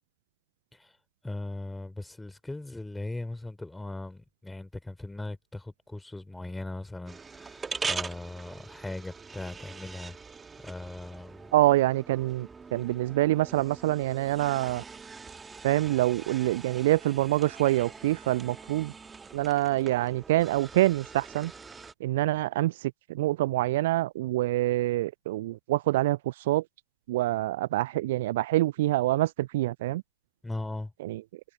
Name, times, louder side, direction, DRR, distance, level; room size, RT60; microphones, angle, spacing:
voice 1, 1.2-10.2 10.6-11.5 30.4-30.9, left 2 dB, 5° left, 3.4 m, -39 dB
sound 1, 7.1-21.9, right 5 dB, 15° right, 1.8 m, -42 dB
voice 2, 11.5-14.8 15.6-18.9 19.3-21.5 22.0-26.6 27.1-30.0 31.0-31.2, right 16 dB, 55° right, 0.5 m, -26 dB
figure-of-eight pair, 90°, 0 cm